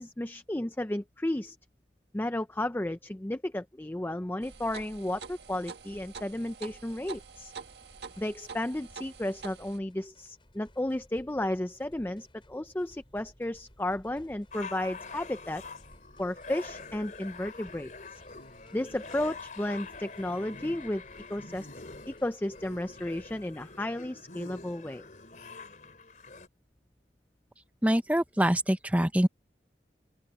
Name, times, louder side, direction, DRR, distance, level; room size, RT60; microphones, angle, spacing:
voice 1, 0.0-1.6 2.1-7.5 8.2-15.6 16.2-18.2 18.7-21.0 21.3-21.7 22.1-25.1, left 1 dB, 10° left, 0.4 m, -33 dB
sound 1, 4.4-9.8, right 5 dB, 75° right, 1.7 m, -46 dB
sound 2, 5.8-23.4, equal, 30° left, 7.8 m, -59 dB
sound 3, 14.5-26.5, left 4 dB, 45° left, 3.4 m, -45 dB
voice 2, 27.8-29.3, equal, 10° right, 0.9 m, -24 dB
open air
head